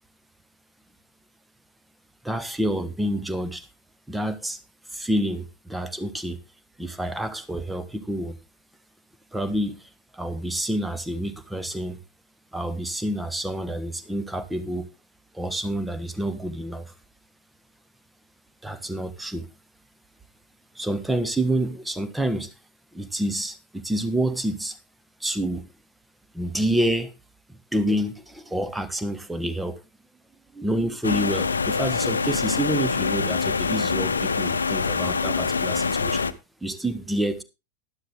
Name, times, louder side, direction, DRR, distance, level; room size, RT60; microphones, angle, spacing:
voice 1, 2.2-3.7 4.1-4.6 4.9-6.4 6.8-8.4 9.3-12.0 12.5-14.9 15.3-16.9 18.6-19.5 20.7-22.5 22.9-24.8 25.2-25.7 26.3-27.1 27.5-29.8 30.5-36.3 36.6-37.4, right 1 dB, 5° right, 1.3 m, -28 dB
sound 1, 31.0-36.3, left 5 dB, 75° left, 0.8 m, -25 dB
12.0 x 11.5 x 3.4 m
figure-of-eight pair, 90°, 0 cm